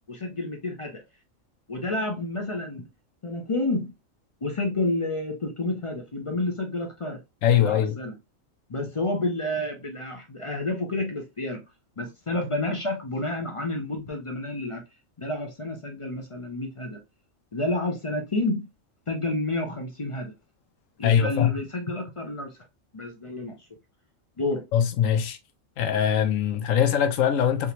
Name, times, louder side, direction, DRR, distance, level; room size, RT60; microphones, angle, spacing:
voice 1, 0.1-1.0 1.7-2.9 3.2-3.9 4.4-7.2 7.5-8.1 8.7-11.6 12.0-14.8 15.2-17.0 17.5-18.7 19.1-20.3 21.0-22.6 22.9-23.7 24.4-24.6, left 2 dB, 40° left, 0.5 m, -30 dB
voice 2, 7.4-8.0 21.0-21.5 24.7-25.4 25.8-27.7, left 9 dB, 80° left, 1.0 m, -22 dB
3.6 x 2.9 x 2.8 m
omnidirectional pair, 1.4 m